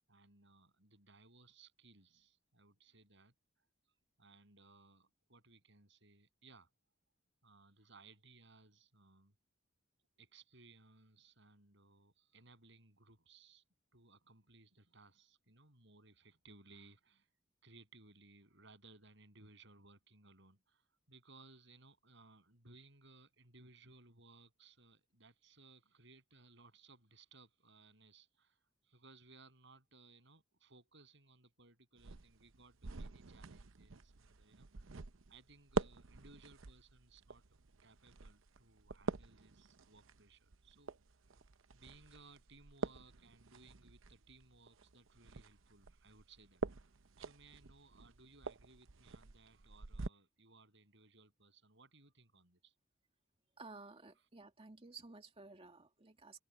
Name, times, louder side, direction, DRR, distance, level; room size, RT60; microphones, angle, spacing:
voice 1, 0.1-3.7 4.2-6.7 7.4-9.3 10.2-13.6 13.9-17.3 17.6-35.0 35.3-37.4 37.8-41.4 41.7-46.9 47.2-52.7, right 3 dB, 65° right, 7.7 m, -63 dB
sound 1, 32.0-50.1, right 3 dB, 90° right, 0.8 m, -46 dB
voice 2, 53.6-56.4, right 3 dB, 30° right, 2.2 m, -54 dB
head